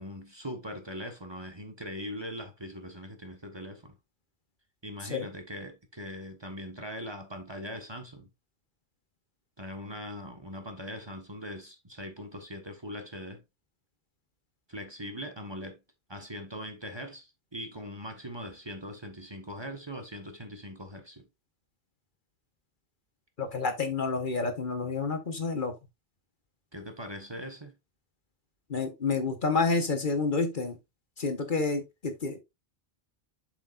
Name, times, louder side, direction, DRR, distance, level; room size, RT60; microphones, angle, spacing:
voice 1, 0.0-3.9 4.8-8.3 9.6-13.4 14.7-15.8 16.1-21.3 26.7-27.7, equal, 25° right, 1.4 m, -41 dB
voice 2, 23.4-25.7 28.7-30.8 31.2-32.4, left 4 dB, 50° left, 1.3 m, -29 dB
7.5 x 6.6 x 2.5 m
omnidirectional pair, 1.1 m